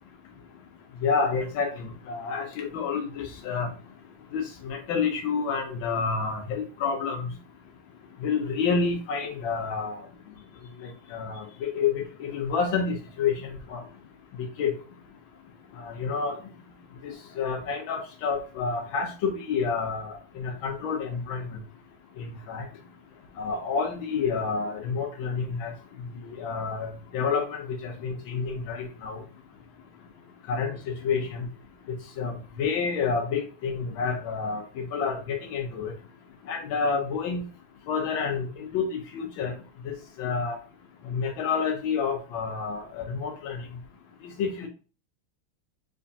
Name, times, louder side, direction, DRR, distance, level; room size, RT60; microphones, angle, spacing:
voice 1, 1.0-1.7 2.1-3.7 4.3-7.3 8.2-10.0 10.8-11.4 11.7-13.8 14.6-14.8 15.8-16.4 17.0-21.4 22.5-22.7 23.4-25.7 26.4-26.9 27.1-29.2 30.5-31.5 32.2-32.3 32.6-34.6 34.9-35.9 36.5-37.4 37.9-39.5 39.8-39.9 40.2-40.6 41.1-43.6 44.4-44.7, left 5 dB, 75° left, 4 dB, 1.3 m, -29 dB
3.8 x 3.3 x 2.6 m, 0.38 s
omnidirectional pair, 2.4 m